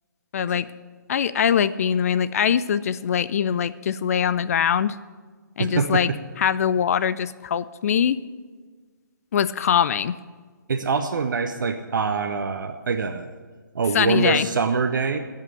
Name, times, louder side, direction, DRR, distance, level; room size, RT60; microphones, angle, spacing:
voice 1, 0.3-0.7 1.1-4.9 5.6-6.1 6.4-8.2 9.3-10.1 13.9-14.5, left 8 dB, 45° left, 16 dB, 0.4 m, -22 dB
voice 2, 5.6-6.2 10.7-13.3 13.7-15.2, right 5 dB, 70° right, 6 dB, 0.8 m, -24 dB
14.0 x 5.6 x 8.0 m, 1.5 s
hypercardioid pair, 145°, 11 cm